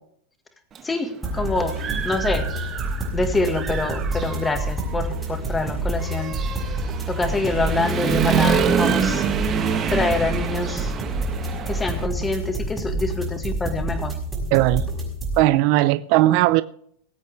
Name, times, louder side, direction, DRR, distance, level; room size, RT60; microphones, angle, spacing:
voice 1, 0.8-1.8 2.0-2.5 3.1-6.4 7.1-9.2 9.9-10.9 11.7-14.1, left 3 dB, 10° left, 7 dB, 1.8 m, -25 dB
Human voice / Motorcycle, 0.8-0.9 1.3-3.1 3.5-12.1, right 7 dB, 30° right, 1.4 m, -26 dB
sound 1, 1.2-15.4, right 2 dB, 10° right, 5.6 m, -28 dB
voice 2, 14.5-14.8 15.4-16.6, right 16 dB, 50° right, 14 dB, 0.6 m, -17 dB
20.0 x 8.1 x 3.5 m, 0.62 s
supercardioid pair, 130°, 0 cm